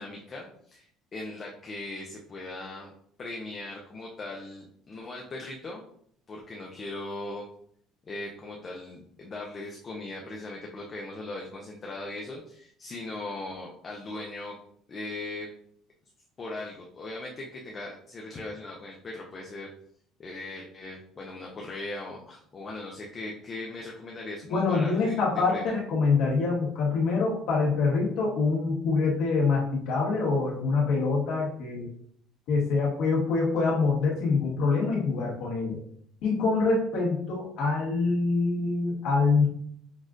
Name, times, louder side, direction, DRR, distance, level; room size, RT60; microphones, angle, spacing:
voice 1, 0.0-2.9 3.2-5.8 6.3-7.5 8.1-14.6 14.9-15.5 16.4-19.7 20.2-25.2 25.5-25.8, left 2 dB, 30° left, -1 dB, 0.5 m, -39 dB
voice 2, 24.5-31.9 32.5-35.8 36.2-39.5, left 4 dB, 75° left, -4 dB, 1.5 m, -25 dB
6.2 x 2.4 x 2.5 m, 0.66 s
cardioid pair, 135°, 0 cm